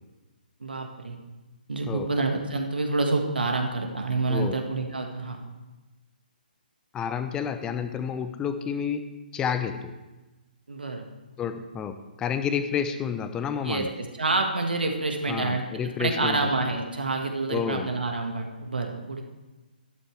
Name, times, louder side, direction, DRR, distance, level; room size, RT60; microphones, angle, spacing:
voice 1, 0.6-1.2 1.7-5.4 10.7-11.1 13.6-13.9 14.2-19.2, right 3 dB, 75° right, 3 dB, 1.9 m, -28 dB
voice 2, 4.3-4.6 6.9-9.0 9.3-9.9 11.4-13.9 15.3-16.5 17.5-17.9, left 7 dB, 15° left, 9 dB, 0.7 m, -30 dB
12.5 x 12.0 x 3.4 m, 1.1 s
figure-of-eight pair, 140°, 5 cm